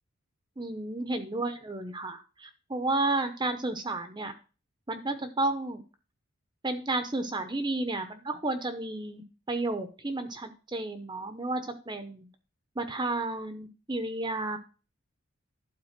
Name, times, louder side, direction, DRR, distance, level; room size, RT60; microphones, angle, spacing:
voice 1, 0.6-4.3 4.9-5.8 6.6-12.3 12.8-14.6, right 2 dB, 20° right, 8 dB, 0.7 m, -32 dB
11.5 x 4.1 x 5.8 m, 0.34 s
head